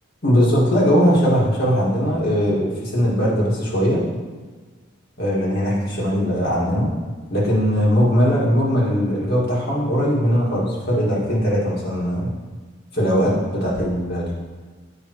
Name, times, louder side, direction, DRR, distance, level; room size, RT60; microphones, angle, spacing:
voice 1, 0.2-4.0 5.2-6.9 7.3-12.3 12.9-14.3, equal, 55° left, -5 dB, 2.0 m, -20 dB
8.7 x 5.2 x 3.1 m, 1.4 s
head